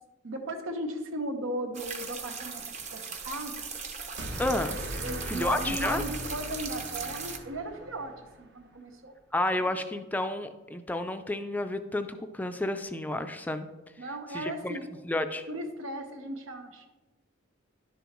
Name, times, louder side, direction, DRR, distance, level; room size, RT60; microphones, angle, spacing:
voice 1, 0.2-2.6 2.9-3.5 5.0-9.1 14.0-14.9 15.5-16.9, right 1 dB, 90° right, 5 dB, 1.1 m, -36 dB
sound 1, 1.7-7.4, right 5 dB, 35° right, 0.8 m, -39 dB
sound 2, 4.2-8.4, right 1 dB, 60° right, 0.9 m, -39 dB
voice 2, 4.4-4.8 5.3-6.0 9.3-13.7 14.3-14.8 15.0-15.4, left 1 dB, 10° left, 8 dB, 0.3 m, -31 dB
11.0 x 6.9 x 3.0 m, 1.2 s
head